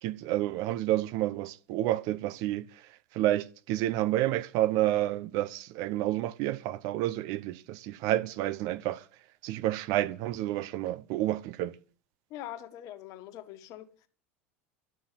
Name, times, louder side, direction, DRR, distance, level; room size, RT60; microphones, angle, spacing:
voice 1, 0.0-2.7 3.1-9.0 9.4-11.7, right 14 dB, 55° right, 0.9 m, -29 dB
voice 2, 12.3-14.1, left 12 dB, 55° left, 1.7 m, -43 dB
12.5 x 7.0 x 7.6 m
hypercardioid pair, 80°, 7 cm